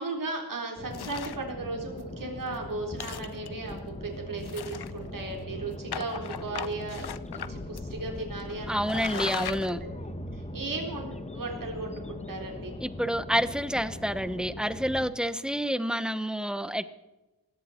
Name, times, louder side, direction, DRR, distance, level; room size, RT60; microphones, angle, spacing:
voice 1, 0.0-9.7 10.3-12.7, right 3 dB, 55° right, 1 dB, 4.2 m, -36 dB
sound 1, 0.8-15.1, left 1 dB, 15° left, 1.3 m, -40 dB
sound 2, 0.9-1.5 2.0-2.1 2.4-2.6 2.9-3.7 4.4-5.2 5.9-7.5 7.8-7.9 8.4-8.5 8.8-9.7, left 9 dB, 75° left, 0.9 m, -38 dB
voice 2, 8.7-9.8 12.8-16.9, equal, ahead, 13 dB, 1.0 m, -28 dB
19.5 x 16.5 x 4.5 m, 1.1 s
wide cardioid pair, 85°, 39 cm